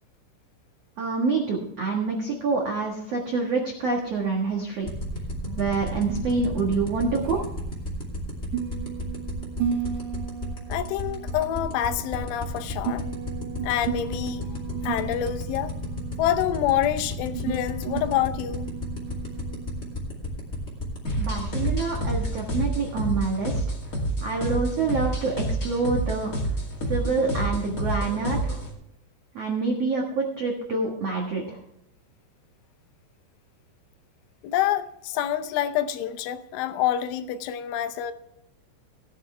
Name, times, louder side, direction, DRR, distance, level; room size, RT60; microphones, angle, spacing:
voice 1, 1.0-4.9 5.5-7.4 21.2-23.6 24.2-26.3 26.8-28.6 29.3-31.6, right 4 dB, 85° right, 1.3 m, -27 dB
sound 1, 3.9-19.9, right 8 dB, 65° right, 1.5 m, -36 dB
sound 2, 4.9-22.5, left 3 dB, 20° left, 1.9 m, -32 dB
voice 2, 10.7-13.0 13.6-15.7 16.2-18.7 34.4-38.1, left 11 dB, 80° left, 3.2 m, -27 dB
sound 3, 21.0-28.7, right 1 dB, 40° left, 1.2 m, -29 dB
17.0 x 9.8 x 3.3 m
omnidirectional pair, 5.5 m